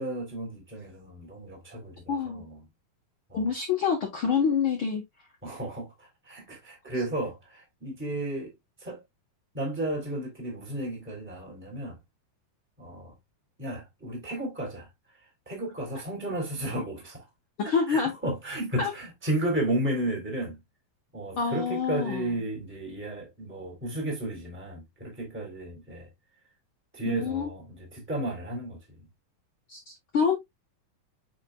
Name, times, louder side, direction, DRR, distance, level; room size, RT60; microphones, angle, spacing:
voice 1, 0.0-2.6 3.3-3.4 5.4-8.5 8.8-9.0 9.5-11.9 12.8-13.1 13.6-14.9 15.4-17.2 17.6-20.6 21.1-26.1 26.9-28.8, right 1 dB, 5° right, 3.0 m, -33 dB
voice 2, 2.1-2.4 3.3-5.0 17.7-18.1 18.8-18.9 21.4-22.4 27.1-27.5 29.7-30.3, left 6 dB, 70° left, 1.2 m, -27 dB
8.9 x 5.3 x 2.2 m
omnidirectional pair, 4.1 m